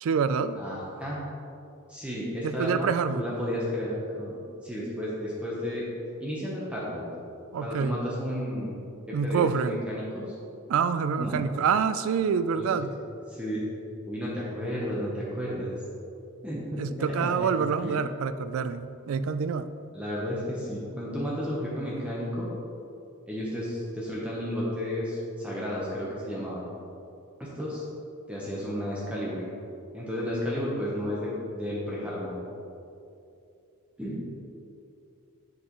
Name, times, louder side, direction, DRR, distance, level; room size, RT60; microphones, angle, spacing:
voice 1, 0.0-0.6 2.4-3.2 7.5-8.0 9.1-9.8 10.7-12.9 16.8-19.7, right 6 dB, 70° right, 12 dB, 0.3 m, -26 dB
voice 2, 0.6-1.2 1.9-4.4 4.6-5.9 6.2-7.1 7.6-8.8 9.1-10.3 11.2-11.4 12.6-12.7 13.3-13.6 14.1-15.8 16.4-17.5 17.8-17.9 19.9-22.5 23.3-26.6 27.4-27.8 28.3-29.4 29.9-32.4 34.0-34.2, equal, 5° right, -6 dB, 0.9 m, -32 dB
7.9 x 6.6 x 3.0 m, 2.6 s
head